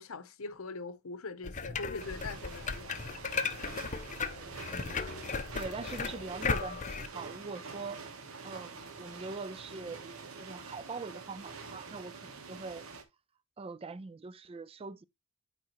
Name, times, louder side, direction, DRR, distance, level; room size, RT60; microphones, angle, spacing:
voice 1, 0.0-3.0, left 3 dB, 90° left, 0.8 m, -42 dB
sound 1, 1.4-7.1, left 5 dB, 35° left, 0.6 m, -36 dB
sound 2, 2.0-13.0, right 4 dB, 85° right, 1.1 m, -46 dB
voice 2, 4.7-5.1 5.5-8.1 8.4-12.9 13.6-15.0, right 4 dB, 25° right, 0.4 m, -43 dB
8.9 x 4.8 x 2.9 m
head